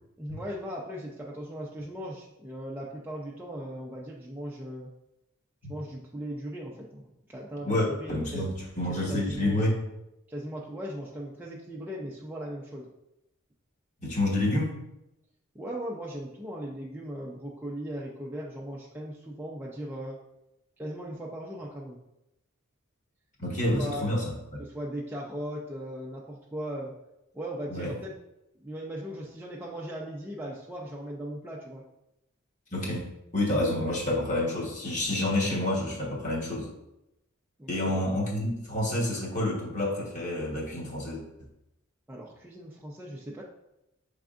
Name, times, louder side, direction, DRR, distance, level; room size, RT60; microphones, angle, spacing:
voice 1, 0.2-4.9 5.7-8.5 8.9-9.7 10.3-12.9 15.5-20.2 20.8-22.0 23.7-24.0 24.6-26.9 27.3-28.1 28.6-31.8 37.6-38.0 42.1-43.4, equal, 10° right, -4 dB, 0.4 m, -38 dB
voice 2, 7.6-9.8 14.0-14.8 23.4-24.6 27.7-27.9 32.7-33.1 33.3-36.7 37.7-41.2, left 1 dB, 35° left, -4 dB, 1.2 m, -28 dB
6.2 x 3.4 x 2.5 m, 0.89 s
head